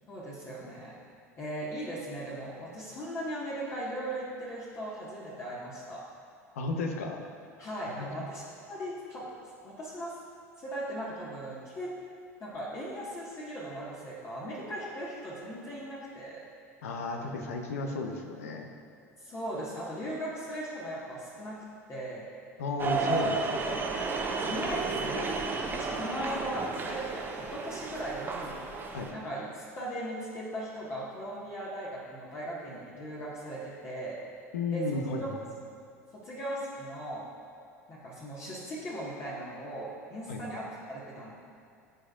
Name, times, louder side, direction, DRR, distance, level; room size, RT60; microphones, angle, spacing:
voice 1, 0.1-0.9 1.4-6.0 7.6-9.3 9.6-10.2 10.6-11.9 12.4-16.4 19.2-21.6 21.9-22.3 24.4-28.6 29.1-34.2 34.7-35.3 36.1-37.2 37.9-41.4, right 1 dB, 35° left, -7 dB, 1.7 m, -38 dB
voice 2, 6.6-7.2 8.0-8.1 16.8-18.7 22.6-23.8 28.9-29.1 34.5-35.4 40.3-40.4, left 3 dB, 70° left, 3 dB, 0.9 m, -33 dB
sound 1, 22.8-29.1, right 4 dB, 25° right, 0.9 m, -32 dB
14.0 x 5.2 x 2.5 m, 2.4 s
figure-of-eight pair, 75°, 8 cm